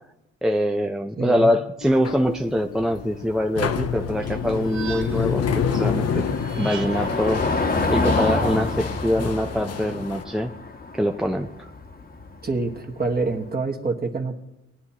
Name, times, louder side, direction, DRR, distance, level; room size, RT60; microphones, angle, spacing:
voice 1, 0.4-6.2 6.6-10.5 10.9-11.7, equal, ahead, 3 dB, 0.5 m, -24 dB
voice 2, 1.2-1.5 12.4-14.4, right 3 dB, 30° right, 3 dB, 1.5 m, -26 dB
sound 1, 1.8-10.2, left 7 dB, 55° left, 0.9 m, -29 dB
Car passing by / Engine, 2.7-13.4, left 3 dB, 30° left, 1.2 m, -29 dB
sound 2, 4.2-5.4 6.4-7.2, right 7 dB, 70° right, 1.7 m, -39 dB
19.0 x 9.6 x 2.9 m, 0.95 s
cardioid pair, 90°, 30 cm